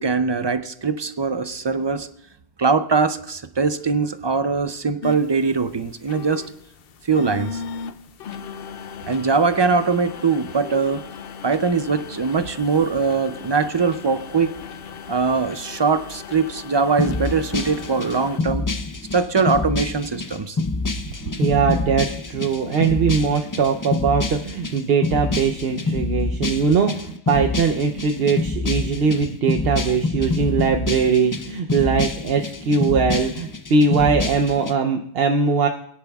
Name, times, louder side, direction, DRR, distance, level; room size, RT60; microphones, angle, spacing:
voice 1, 0.0-2.1 2.6-6.4 7.1-7.6 9.1-11.0 11.4-14.6 15.1-18.7 19.1-20.6, right 4 dB, 40° right, 11 dB, 0.4 m, -21 dB
sound 1, 5.0-18.4, left 6 dB, 70° left, 0.8 m, -37 dB
sound 2, 17.0-34.7, left 3 dB, 25° left, 0.4 m, -27 dB
voice 2, 21.4-35.7, right 5 dB, 70° right, 4 dB, 0.9 m, -21 dB
22.5 x 10.5 x 2.3 m, 0.71 s
omnidirectional pair, 1.0 m